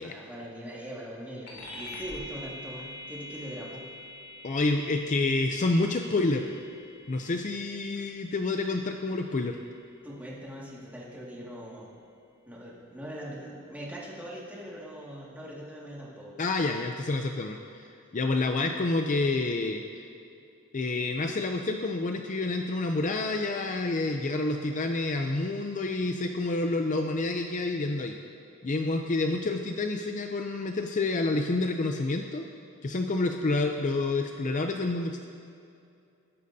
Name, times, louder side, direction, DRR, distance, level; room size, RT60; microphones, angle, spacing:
voice 1, 0.0-3.8 10.0-11.9 12.5-16.4, equal, 10° right, -6 dB, 2.0 m, -41 dB
sound 1, 1.5-11.3, left 1 dB, 90° left, 2.7 m, -46 dB
voice 2, 4.4-6.5 7.1-9.6 16.4-20.1 20.7-28.2 28.6-32.5 32.8-35.3, left 2 dB, 35° left, 4 dB, 0.5 m, -28 dB
20.0 x 10.5 x 2.7 m, 2.5 s
head